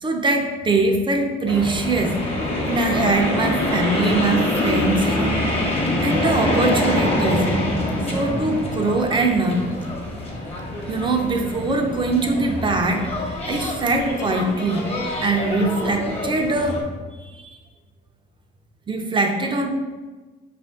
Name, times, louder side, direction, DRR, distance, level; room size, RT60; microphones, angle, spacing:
voice 1, 0.0-2.2 2.7-5.4 6.0-7.5 8.1-9.6 10.9-14.9 15.2-16.9 17.2-17.5 18.9-19.7, right 3 dB, 25° right, 3 dB, 0.6 m, -22 dB
sound 1, 1.5-16.8, left 1 dB, 30° left, 1.0 m, -25 dB
4.8 x 2.5 x 3.6 m, 1.3 s
cardioid pair, 90°, 20 cm